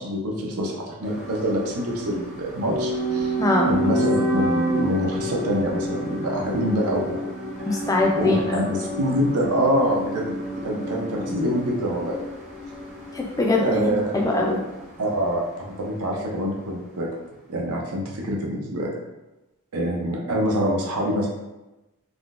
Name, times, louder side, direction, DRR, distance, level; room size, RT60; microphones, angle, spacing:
voice 1, 0.0-3.3 3.6-7.2 7.6-7.8 8.2-10.4 10.6-12.2 13.5-14.1 15.0-17.1 17.5-18.9 19.7-21.3, equal, 85° right, -1 dB, 0.7 m, -25 dB
sound 1, 1.0-15.1 15.3-15.4, right 1 dB, 30° right, 0.6 m, -29 dB
voice 2, 7.7-8.6 13.1-14.6, left 2 dB, 15° left, -1 dB, 0.3 m, -22 dB
3.5 x 2.2 x 2.4 m, 1.0 s
head